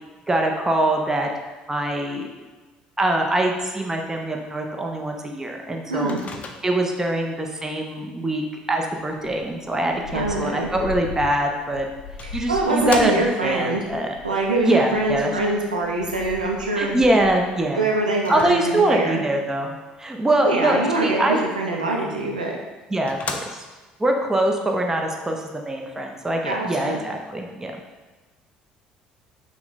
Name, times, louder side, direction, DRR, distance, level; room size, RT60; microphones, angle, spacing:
voice 1, 0.3-1.3 1.7-2.3 3.0-6.1 6.6-11.9 12.3-13.1 13.4-14.1 14.6-15.3 16.8-17.9 18.3-19.7 20.0-21.4 22.9-23.4 24.0-27.7, right 1 dB, 10° right, 1 dB, 0.7 m, -23 dB
voice 2, 5.9-6.2 10.1-10.7 12.2-13.8 14.2-17.0 17.7-19.2 20.4-22.6 26.5-27.0, right 2 dB, 85° right, -1 dB, 0.5 m, -24 dB
Microwave oven, 6.1-7.0 11.3-11.4 12.2-13.6 18.2-19.1 22.2-22.3 22.7-22.8 23.1-23.9, left 4 dB, 35° left, 0.5 m, -35 dB
sound 1, 9.1-17.6, left 4 dB, 85° left, 0.5 m, -39 dB
5.7 x 2.2 x 4.1 m, 1.3 s
figure-of-eight pair, 55°, 4 cm